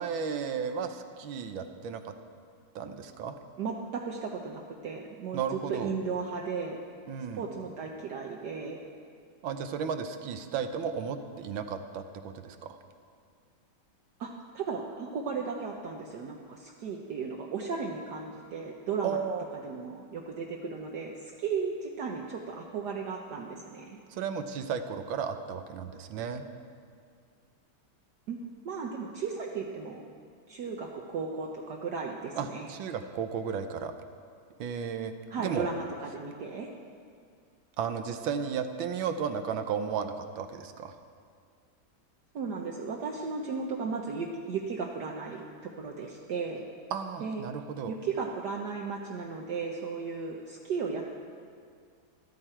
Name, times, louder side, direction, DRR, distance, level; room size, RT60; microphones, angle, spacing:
voice 1, 0.0-2.1 2.7-3.3 5.3-5.9 7.1-7.4 9.4-12.8 19.0-19.5 24.1-26.5 32.4-33.9 34.6-35.1 35.4-35.7 37.8-41.0 46.9-47.9, right 7 dB, 80° right, 8 dB, 1.5 m, -34 dB
voice 2, 3.6-6.9 7.3-8.8 14.2-19.2 19.6-24.0 28.3-28.4 28.6-30.0 30.5-32.7 35.3-36.7 42.3-45.5 45.8-46.6 47.2-47.4 47.9-51.1, right 5 dB, 65° right, 0 dB, 1.3 m, -35 dB
13.5 x 12.5 x 4.4 m, 2.2 s
omnidirectional pair, 2.1 m